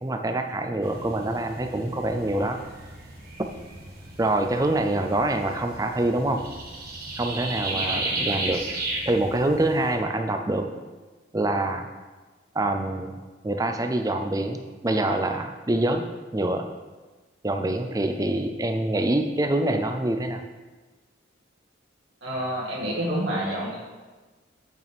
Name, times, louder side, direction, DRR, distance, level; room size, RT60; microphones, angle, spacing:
voice 1, 0.0-2.6 4.2-6.4 7.2-8.6 9.1-10.8 11.3-11.9 12.5-16.6 17.4-20.4, right 1 dB, 15° right, 6 dB, 0.4 m, -25 dB
sound 1, 0.8-9.9, right 2 dB, 45° right, 1.5 m, -34 dB
voice 2, 7.7-8.0 22.2-23.8, right 1 dB, 70° right, -6 dB, 1.9 m, -29 dB
8.5 x 6.5 x 3.5 m, 1.3 s
head